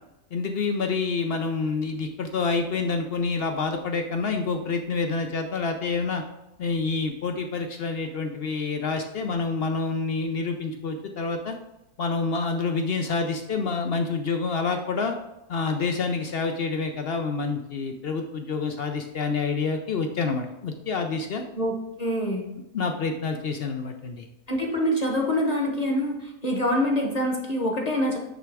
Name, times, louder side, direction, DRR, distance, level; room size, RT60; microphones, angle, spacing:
voice 1, 0.3-6.2 6.6-11.6 12.0-15.1 15.5-21.4 22.7-24.3, left 4 dB, 70° left, 5 dB, 0.5 m, -27 dB
voice 2, 21.5-22.5 24.5-28.2, equal, 30° left, 0 dB, 0.9 m, -25 dB
8.9 x 3.4 x 4.7 m, 0.93 s
omnidirectional pair, 1.7 m